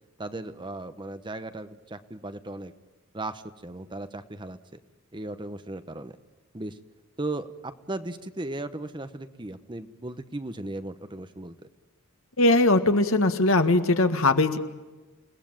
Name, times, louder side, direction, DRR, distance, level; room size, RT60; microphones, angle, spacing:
voice 1, 0.2-2.7 3.1-4.8 5.1-6.1 6.5-6.8 7.2-11.6, right 2 dB, 20° right, 10 dB, 1.0 m, -36 dB
voice 2, 12.4-14.6, left 2 dB, 65° left, 8 dB, 1.8 m, -20 dB
29.5 x 18.0 x 9.0 m, 1.2 s
head